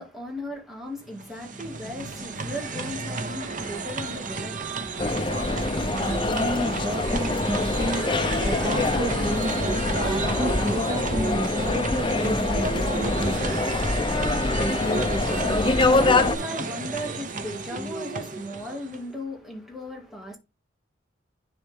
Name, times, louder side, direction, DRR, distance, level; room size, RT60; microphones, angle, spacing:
voice 1, 0.0-5.1 14.6-20.4, left 1 dB, ahead, 2.3 m, -37 dB
sound 1, 1.1-19.1, right 4 dB, 45° right, 1.0 m, -32 dB
sound 2, 1.6-11.1, right 2 dB, 80° right, 3.0 m, -47 dB
sound 3, 5.0-16.4, left 2 dB, 25° left, 0.7 m, -25 dB
voice 2, 5.8-13.8, right 1 dB, 30° right, 0.5 m, -32 dB
10.0 x 4.1 x 3.7 m
head